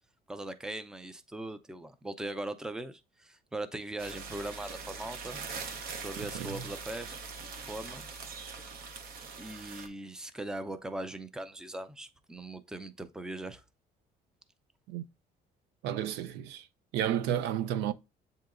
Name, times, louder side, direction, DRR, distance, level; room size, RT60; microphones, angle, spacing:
voice 1, 0.3-5.4 6.0-7.1 7.7-8.1 9.4-13.6, right 1 dB, 5° right, 0.4 m, -40 dB
sound 1, 4.0-9.9, right 5 dB, 60° right, 0.8 m, -42 dB
voice 2, 6.2-6.6 14.9-15.1 15.8-16.7 16.9-17.9, right 10 dB, 90° right, 0.4 m, -32 dB
7.8 x 2.8 x 2.4 m
cardioid pair, 110°, 17 cm